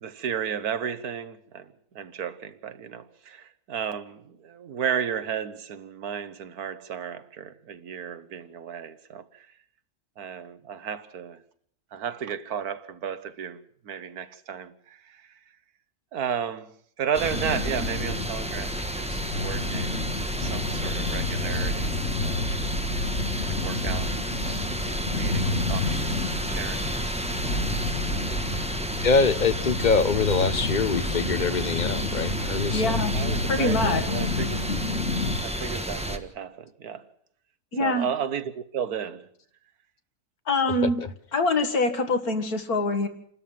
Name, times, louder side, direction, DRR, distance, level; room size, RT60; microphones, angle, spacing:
voice 1, 0.0-9.5 10.2-11.4 11.9-13.6 13.8-15.3 16.1-16.7 17.0-21.9 22.2-22.5 23.4-24.2 24.4-26.1 26.5-26.9 33.1-34.7 35.4-37.1 37.8-39.3, right 8 dB, 90° right, 1.6 m, -33 dB
sound 1, 17.1-36.2, equal, 5° right, 1.4 m, -31 dB
sound 2, 17.3-35.4, left 3 dB, 55° left, 3.4 m, -30 dB
voice 2, 29.0-33.0, left 4 dB, 35° left, 1.0 m, -24 dB
voice 3, 32.7-33.2 33.5-34.0 37.7-38.1 40.5-41.0 41.3-43.1, left 2 dB, 80° left, 2.4 m, -24 dB
28.0 x 13.0 x 7.4 m
omnidirectional pair, 1.6 m